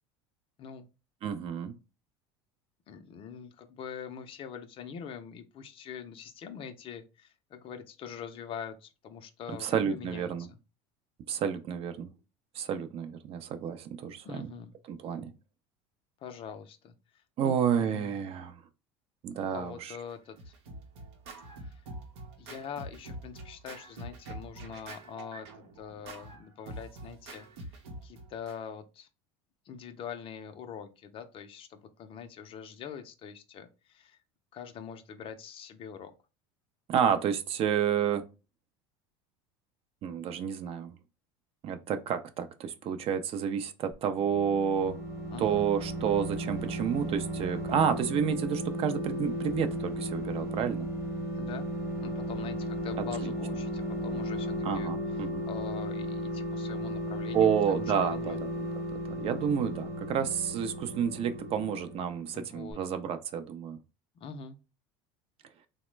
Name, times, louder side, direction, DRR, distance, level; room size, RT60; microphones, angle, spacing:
voice 1, 1.2-1.7 9.6-10.5 11.3-12.1 12.5-14.5 14.9-15.3 17.4-18.6 19.2-19.9 36.9-38.2 40.0-40.9 41.6-45.0 45.4-50.9 53.2-53.3 54.6-55.4 57.3-58.5 59.2-63.8, right 8 dB, 45° right, 0.4 m, -30 dB
voice 2, 2.9-10.6 14.2-14.7 16.2-16.9 17.4-18.2 19.4-20.5 21.6-21.8 22.4-25.5 25.8-27.5 28.0-29.1 29.7-34.2 34.5-36.1 45.3-45.6 51.3-51.7 52.0-58.4 62.3-62.8 64.2-64.6, left 7 dB, 40° left, 0.5 m, -44 dB
Scratching (performance technique), 20.1-28.6, right 2 dB, 85° right, 0.7 m, -45 dB
sound 1, 44.1-62.4 62.7-62.8, equal, 20° right, 0.8 m, -35 dB
3.0 x 2.0 x 3.1 m
supercardioid pair, 105°, 14 cm